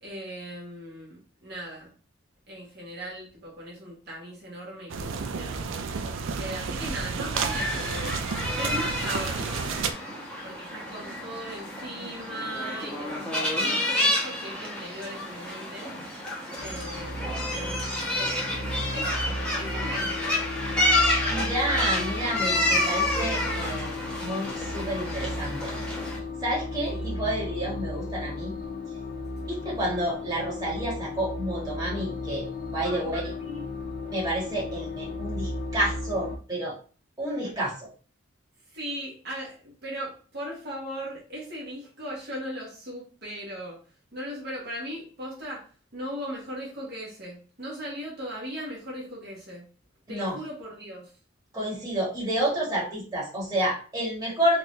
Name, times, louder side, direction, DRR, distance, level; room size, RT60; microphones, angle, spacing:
voice 1, 0.0-1.9 2.5-5.7 6.4-8.2 8.6-9.8 10.4-15.9 16.6-18.5 18.9-19.1 19.6-20.5 26.9-27.3 32.8-33.1 33.4-33.7 38.7-43.8 44.1-45.6 45.9-49.7 50.1-51.1, equal, 55° right, -5 dB, 1.3 m, -38 dB
sound 1, 4.9-9.9, right 5 dB, 70° right, 0.4 m, -31 dB
sound 2, 7.3-26.2, left 1 dB, 5° left, 0.9 m, -29 dB
sound 3, 16.6-36.4, left 2 dB, 45° left, 0.5 m, -34 dB
voice 2, 21.3-23.9 24.2-25.7 26.4-28.5 29.5-32.4 32.7-33.3 34.1-36.7 37.2-37.9 50.1-50.4 51.5-54.6, right 1 dB, 20° right, -6 dB, 1.5 m, -29 dB
3.7 x 2.5 x 3.1 m, 0.40 s
head